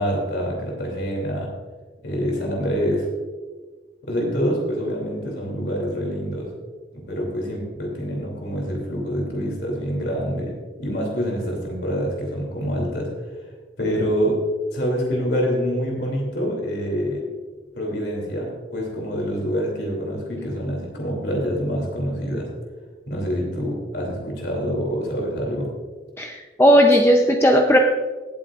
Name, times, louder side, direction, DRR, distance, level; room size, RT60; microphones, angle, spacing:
voice 1, 0.0-1.5 2.0-3.1 4.0-6.5 6.9-10.5 10.8-13.1 13.8-14.4 14.7-17.2 17.8-22.5 23.1-25.7, equal, 70° left, -1 dB, 2.9 m, -26 dB
voice 2, 26.2-27.8, equal, 15° left, 2 dB, 0.6 m, -16 dB
17.5 x 8.6 x 2.5 m, 1.4 s
head